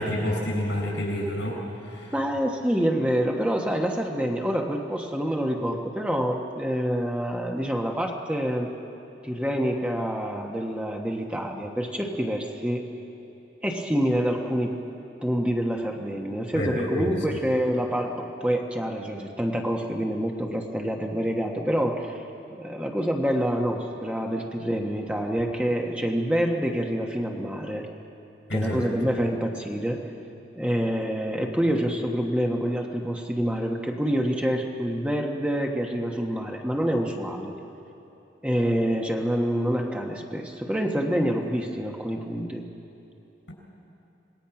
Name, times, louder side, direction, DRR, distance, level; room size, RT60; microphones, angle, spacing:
voice 1, 0.0-2.1 16.5-17.1 28.5-28.9, equal, 85° left, -1 dB, 6.5 m, -28 dB
voice 2, 2.1-8.7 9.2-12.8 13.6-14.8 15.2-22.2 22.5-27.9 28.5-30.1 30.6-37.5 38.4-42.6, equal, 5° right, 1 dB, 1.2 m, -27 dB
26.0 x 19.5 x 5.9 m, 2.8 s
head